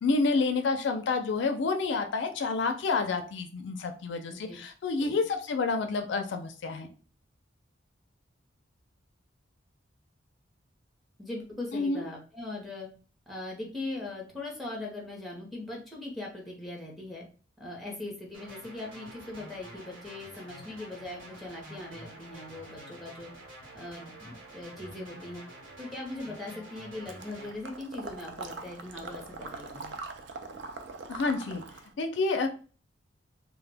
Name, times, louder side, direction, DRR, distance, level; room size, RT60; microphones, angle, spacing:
voice 1, 0.0-6.9 11.7-12.0 31.1-31.6 32.0-32.5, left 4 dB, 65° left, 6 dB, 0.4 m, -29 dB
voice 2, 11.2-12.9 13.3-17.2 17.6-23.3 23.7-25.4 25.8-30.0, left 2 dB, ahead, -2 dB, 0.6 m, -40 dB
sound 1, 18.3-27.5, right 1 dB, 85° right, 1.1 m, -48 dB
Water / Liquid, 27.1-31.9, right 3 dB, 60° right, 0.4 m, -42 dB
2.1 x 2.1 x 3.3 m, 0.37 s
head